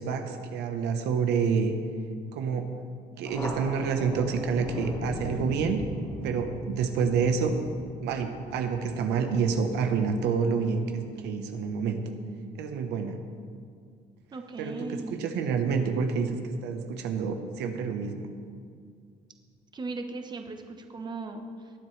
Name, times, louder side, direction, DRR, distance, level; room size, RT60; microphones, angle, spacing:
voice 1, 0.0-1.7 2.3-2.7 3.2-5.8 6.2-7.6 8.0-12.0 12.6-13.2 14.6-14.7 15.1-16.4 16.6-18.3, right 5 dB, 85° right, 6 dB, 1.0 m, -28 dB
Thunder, 3.2-10.3, left 1 dB, 20° left, 2.3 m, -38 dB
voice 2, 14.3-15.4 19.7-21.7, right 3 dB, 25° right, 5 dB, 1.0 m, -38 dB
20.0 x 7.8 x 3.3 m, 2.2 s
cardioid pair, 110°, 17 cm